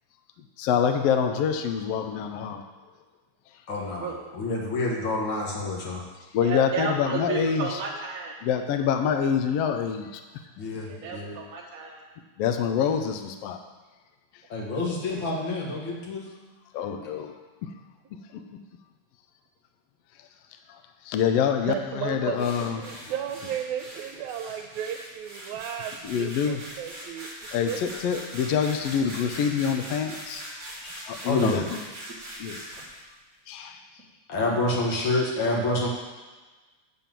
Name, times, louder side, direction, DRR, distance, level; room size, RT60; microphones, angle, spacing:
voice 1, 0.6-2.6 6.3-7.8 8.4-10.2 12.4-13.6 16.7-17.3 20.7-20.8 21.0-23.4 26.0-26.7 27.5-31.9 32.4-32.6 33.5-33.8 34.4-34.6, left 7 dB, 75° left, 6 dB, 1.6 m, -26 dB
voice 2, 3.7-6.0 10.6-11.4 14.5-16.2 31.2-31.6 34.3-35.9, left 2 dB, 45° left, -2 dB, 2.0 m, -28 dB
voice 3, 6.4-8.3 10.8-12.0, right 5 dB, 55° right, -2 dB, 1.0 m, -32 dB
voice 4, 21.7-27.3 27.7-27.8, right 9 dB, 85° right, 4 dB, 2.0 m, -34 dB
sound 1, 22.4-33.0, equal, 30° right, 2.4 m, -41 dB
9.1 x 4.3 x 7.5 m, 1.3 s
omnidirectional pair, 3.3 m